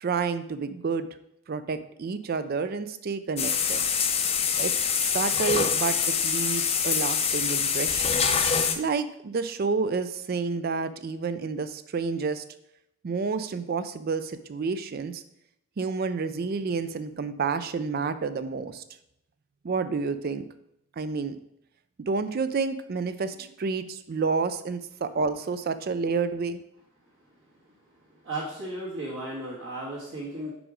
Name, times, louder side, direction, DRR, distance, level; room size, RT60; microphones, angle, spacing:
voice 1, 0.0-1.1 1.5-3.8 4.6-4.7 5.1-8.2 8.8-12.4 13.0-15.2 15.8-18.8 19.6-20.4 21.0-21.4 22.0-26.6, right 4 dB, 45° right, 12 dB, 0.4 m, -29 dB
sound 1, 3.4-8.8, left 6 dB, 30° left, 0.5 m, -25 dB
voice 2, 28.2-30.5, right 1 dB, 60° right, -8 dB, 1.6 m, -34 dB
5.0 x 4.9 x 5.0 m, 0.78 s
head